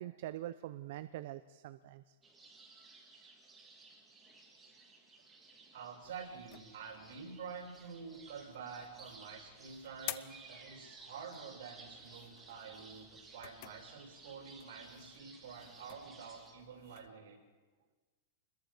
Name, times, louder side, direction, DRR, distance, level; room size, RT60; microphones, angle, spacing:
voice 1, 0.0-2.2, right 13 dB, 50° right, 12 dB, 0.7 m, -44 dB
sound 1, 2.2-16.5, right 3 dB, 10° right, 2.7 m, -57 dB
voice 2, 5.7-17.4, right 5 dB, 70° right, 0 dB, 6.2 m, -48 dB
sound 2, 6.0-17.1, left 17 dB, 40° left, 0.8 m, -53 dB
28.0 x 21.5 x 5.1 m, 1.4 s
supercardioid pair, 165°, 0 cm